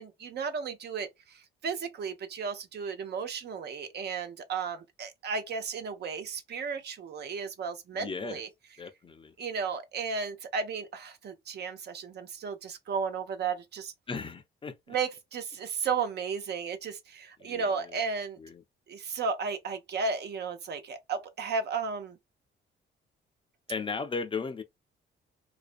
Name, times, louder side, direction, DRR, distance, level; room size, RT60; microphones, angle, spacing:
voice 1, 0.0-8.5 9.4-13.9 14.9-18.4 18.9-22.2, right 5 dB, 55° right, 0.6 m, -34 dB
voice 2, 7.9-8.4 8.8-9.3 14.1-14.8 17.4-18.0 18.4-18.6 23.7-24.6, left 4 dB, 25° left, 0.4 m, -36 dB
2.4 x 2.1 x 2.4 m
cardioid pair, 90°, 20 cm